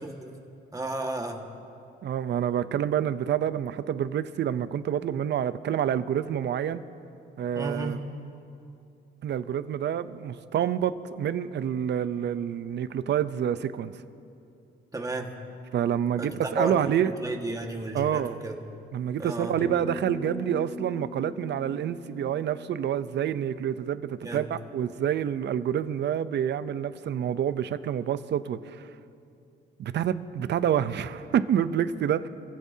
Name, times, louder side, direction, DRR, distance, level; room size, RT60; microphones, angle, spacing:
voice 1, 0.7-1.5 7.5-8.0 14.9-15.4 16.2-18.5 19.2-19.6 24.2-24.5, right 2 dB, 15° right, 2 dB, 1.7 m, -33 dB
voice 2, 2.0-6.8 7.4-8.0 9.2-14.0 15.7-17.1 17.9-18.4 18.9-28.9 29.8-32.3, right 9 dB, 60° right, 13 dB, 0.7 m, -28 dB
sound 1, 19.6-24.1, left 1 dB, 15° left, 0.7 m, -41 dB
26.5 x 16.0 x 2.8 m, 2.7 s
cardioid pair, 90°, 20 cm